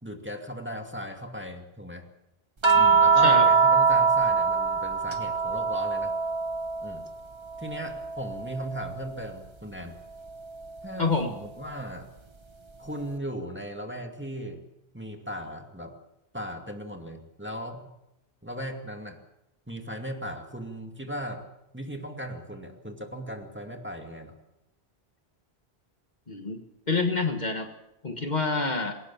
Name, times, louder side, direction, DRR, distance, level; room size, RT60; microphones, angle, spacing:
voice 1, 0.0-2.1 2.7-6.2 6.8-7.0 7.6-10.0 10.8-12.1 12.8-14.6 14.9-16.0 16.3-17.9 18.4-19.2 19.7-21.5 21.7-24.3, equal, 10° right, 4 dB, 2.3 m, -37 dB
sound 1, 2.6-7.1 7.5-9.1 10.6-10.8, right 5 dB, 30° right, 1.1 m, -23 dB
voice 2, 11.0-11.3 26.3-26.6 26.9-27.7 28.0-28.9, left 3 dB, 45° left, 5 dB, 1.7 m, -27 dB
21.5 x 18.0 x 7.3 m, 0.86 s
omnidirectional pair, 1.0 m